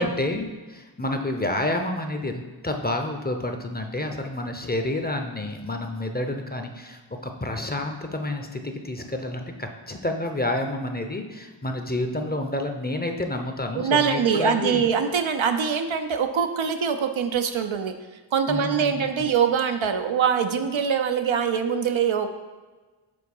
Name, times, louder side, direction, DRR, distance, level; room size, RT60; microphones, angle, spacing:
voice 1, 0.0-14.8 18.5-19.3, left 1 dB, 20° left, 5 dB, 0.6 m, -29 dB
voice 2, 13.7-17.9 18.3-22.3, right 7 dB, 75° right, 7 dB, 0.6 m, -23 dB
5.1 x 3.8 x 5.4 m, 1.3 s
cardioid pair, 40°, 47 cm